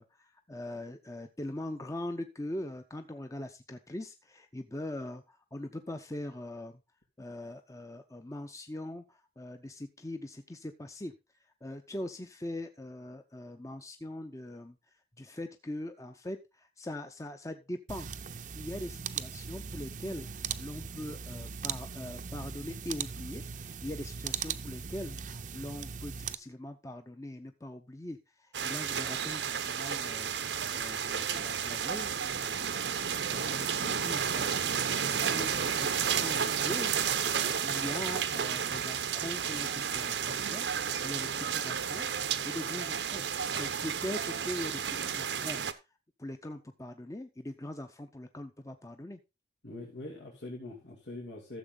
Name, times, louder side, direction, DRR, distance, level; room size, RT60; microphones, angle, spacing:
voice 1, 0.0-6.8 7.2-11.1 11.6-14.8 15.2-18.1 18.6-20.3 20.6-30.4 30.7-34.6 35.0-36.9 37.3-40.7 41.0-42.1 42.4-43.3 43.6-45.6 46.2-49.2, left 1 dB, 20° left, 7 dB, 0.7 m, -41 dB
sound 1, 17.9-26.3, right 6 dB, 45° right, 0.6 m, -39 dB
sound 2, 28.5-45.7, right 7 dB, 85° right, 0.9 m, -32 dB
voice 2, 49.6-51.6, left 2 dB, 90° left, -3 dB, 2.7 m, -43 dB
13.5 x 7.2 x 3.9 m, 0.26 s
head